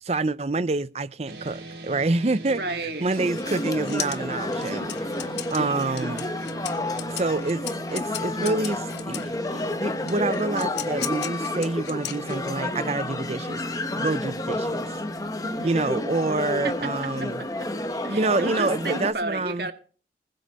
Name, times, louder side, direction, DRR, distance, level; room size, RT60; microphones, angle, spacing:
voice 1, 0.0-2.6 3.0-6.2 7.0-7.6 7.9-14.9 15.6-17.4 18.1-19.7, right 3 dB, 35° right, 0.5 m, -27 dB
sound 1, 1.3-17.6, right 1 dB, 80° right, 4.2 m, -40 dB
voice 2, 2.5-3.2 5.7-6.3 15.4-16.0 16.6-17.7 18.0-19.7, right 2 dB, 65° right, 1.7 m, -34 dB
sound 2, 3.1-9.3 10.1-12.7, left 12 dB, 80° left, 1.3 m, -37 dB
sound 3, 3.2-19.1, left 1 dB, 20° left, 1.1 m, -31 dB
21.0 x 7.9 x 4.2 m
head